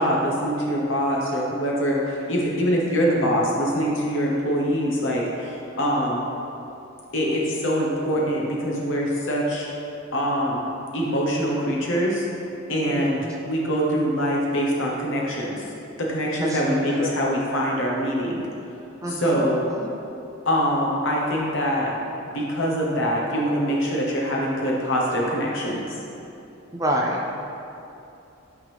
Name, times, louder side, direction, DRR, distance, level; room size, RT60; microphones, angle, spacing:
voice 1, 0.0-6.3 7.1-9.7 10.1-12.3 12.7-13.2 13.5-15.6 16.0-18.4 19.2-19.6 20.5-21.9 22.3-25.9, equal, 65° left, -3 dB, 1.0 m, -24 dB
voice 2, 12.9-13.3 16.4-17.2 19.0-19.5 19.8-19.9 26.7-27.4, equal, 15° right, -1 dB, 0.4 m, -28 dB
8.8 x 3.7 x 3.4 m, 2.8 s
head